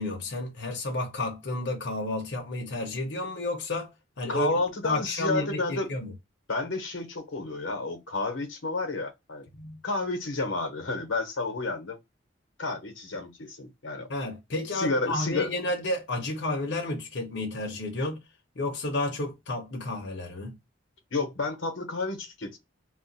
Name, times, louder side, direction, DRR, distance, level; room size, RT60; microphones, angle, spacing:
voice 1, 0.0-3.9 4.2-4.5 4.8-6.1 9.6-9.8 14.1-18.2 18.6-20.5, left 1 dB, 60° left, 0.8 m, -31 dB
voice 2, 4.3-5.9 6.5-9.5 9.8-12.0 12.6-14.1 14.7-15.5 21.1-22.6, left 3 dB, 85° left, 0.9 m, -30 dB
2.4 x 2.2 x 3.9 m
head